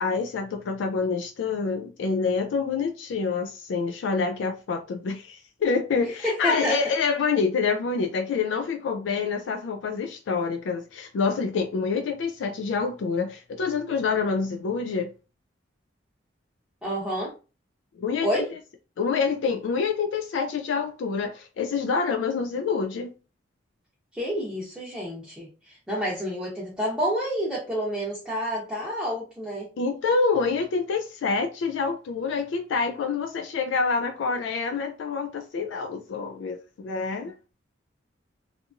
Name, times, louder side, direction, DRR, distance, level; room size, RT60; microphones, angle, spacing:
voice 1, 0.0-15.1 18.0-18.5 19.0-23.1 29.8-37.3, left 5 dB, 70° left, 0.3 m, -27 dB
voice 2, 6.2-6.8 16.8-17.3 18.2-18.5 24.1-29.7, equal, 5° right, 0.7 m, -29 dB
2.8 x 2.5 x 2.4 m
head